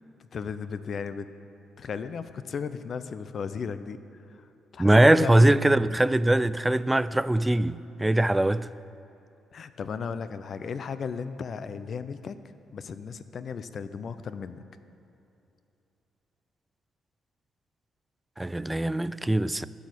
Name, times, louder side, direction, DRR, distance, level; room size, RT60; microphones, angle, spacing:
voice 1, 0.3-1.3 1.8-4.0 4.4-4.5 4.7-5.5 9.5-12.4 12.7-14.6, left 6 dB, 50° left, 0.6 m, -35 dB
voice 2, 4.8-8.7 18.4-19.7, right 1 dB, 10° right, 0.3 m, -21 dB
13.0 x 6.3 x 8.3 m
cardioid pair, 90°, 0 cm